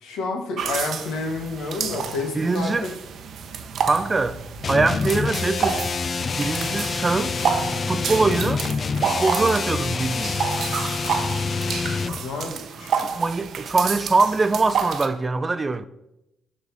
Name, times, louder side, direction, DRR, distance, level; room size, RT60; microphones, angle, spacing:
voice 1, 0.0-2.9 11.9-13.1, left 3 dB, 85° left, 1.4 m, -30 dB
sound 1, 0.6-15.1, right 6 dB, 65° right, 0.7 m, -30 dB
voice 2, 2.3-2.9 3.8-4.4 4.7-5.8 6.4-7.4 7.9-8.7 9.0-10.4 11.3-11.4 12.4-12.5 13.0-15.9, right 3 dB, 25° right, 0.4 m, -23 dB
sound 2, 4.6-12.2, left 5 dB, 40° left, 0.3 m, -27 dB
12.0 x 4.0 x 3.5 m
cardioid pair, 90°, 0 cm